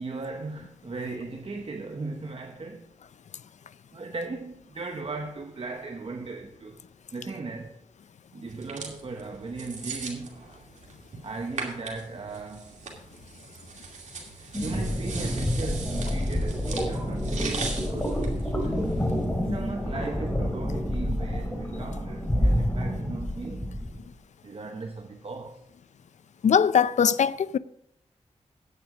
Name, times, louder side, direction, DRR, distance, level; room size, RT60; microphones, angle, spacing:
voice 1, 0.0-2.9 3.9-6.8 7.1-7.8 8.3-10.4 11.2-12.8 14.4-19.1 19.4-23.7 24.4-25.6, right 3 dB, 50° right, 1.0 m, -37 dB
sound 1, 8.5-19.2, right 4 dB, 80° right, 2.5 m, -40 dB
sound 2, 14.5-24.0, equal, 15° left, 3.3 m, -28 dB
voice 2, 26.4-27.6, left 7 dB, 75° left, 0.4 m, -21 dB
10.0 x 9.1 x 4.9 m
cardioid pair, 55°, 12 cm